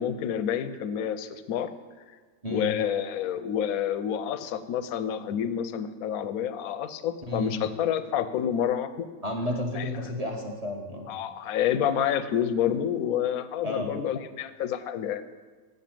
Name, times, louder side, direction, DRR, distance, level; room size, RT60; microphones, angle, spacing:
voice 1, 0.0-1.7 2.5-9.1 9.7-9.9 11.1-15.2, left 9 dB, 70° left, 11 dB, 0.9 m, -28 dB
voice 2, 9.2-11.1 13.6-13.9, left 1 dB, 25° right, 1 dB, 1.0 m, -31 dB
7.8 x 6.7 x 7.5 m, 1.5 s
omnidirectional pair, 1.7 m